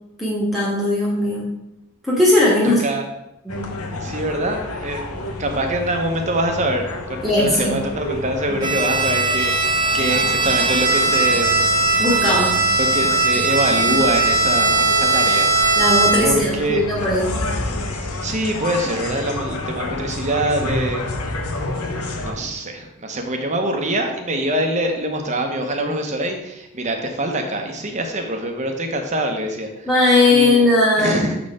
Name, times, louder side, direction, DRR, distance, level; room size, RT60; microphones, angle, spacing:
voice 1, 0.2-1.5 2.0-2.8 3.4-3.7 7.2-7.7 8.5-8.7 12.0-12.6 15.8-17.3 29.9-31.2, left 2 dB, ahead, -7 dB, 1.5 m, -18 dB
voice 2, 2.6-3.0 4.0-5.0 5.4-11.6 12.8-15.5 16.2-16.8 18.2-21.1 22.2-29.9 30.3-30.6 31.0-31.4, right 1 dB, 30° right, 4 dB, 0.9 m, -24 dB
sound 1, 3.5-22.3, left 2 dB, 85° left, 0.9 m, -30 dB
Bowed string instrument, 8.6-16.4, right 3 dB, 15° right, 1.3 m, -19 dB
7.0 x 4.4 x 4.9 m, 0.87 s
head